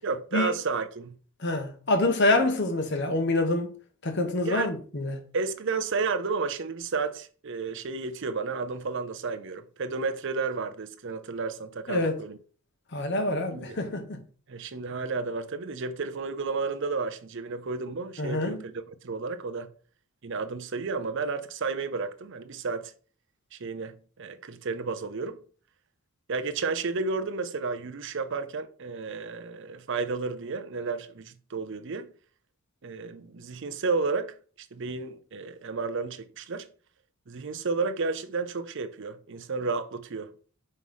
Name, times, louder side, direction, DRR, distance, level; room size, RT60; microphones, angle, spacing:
voice 1, 0.0-1.2 2.3-2.4 4.4-4.7 5.3-12.4 13.5-13.8 14.5-18.7 19.0-19.7 20.2-22.9 23.5-25.4 26.3-32.1 32.8-36.7 37.3-40.3, right 4 dB, 60° right, 0.6 m, -32 dB
voice 2, 1.4-3.7 4.0-5.2 11.9-12.2 12.9-14.1 18.2-18.6, left 2 dB, 55° left, 1.1 m, -26 dB
5.5 x 3.2 x 5.4 m
head